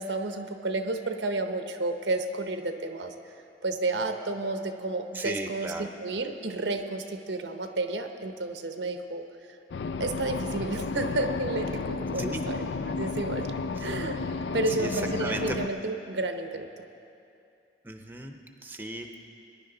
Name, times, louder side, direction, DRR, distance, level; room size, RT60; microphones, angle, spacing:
voice 1, 0.0-3.1 3.6-9.2 10.0-13.5 13.8-14.2 14.5-16.8, right 2 dB, 85° right, 7 dB, 0.8 m, -31 dB
voice 2, 5.1-5.9 12.2-12.4 14.8-15.6 17.8-19.1, right 1 dB, 10° right, 4 dB, 0.7 m, -35 dB
sound 1, 9.7-15.7, left 4 dB, 75° left, 0.4 m, -32 dB
20.5 x 10.5 x 3.9 m, 2.6 s
head